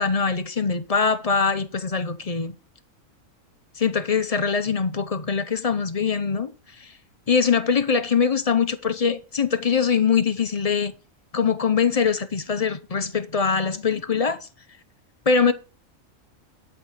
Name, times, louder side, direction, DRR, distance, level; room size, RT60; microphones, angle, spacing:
voice 1, 0.0-2.5 3.8-6.5 6.8-6.9 7.3-10.9 11.3-14.5 15.3-15.5, left 6 dB, 35° left, 0.8 m, -22 dB
11.5 x 4.3 x 6.6 m
omnidirectional pair, 1.4 m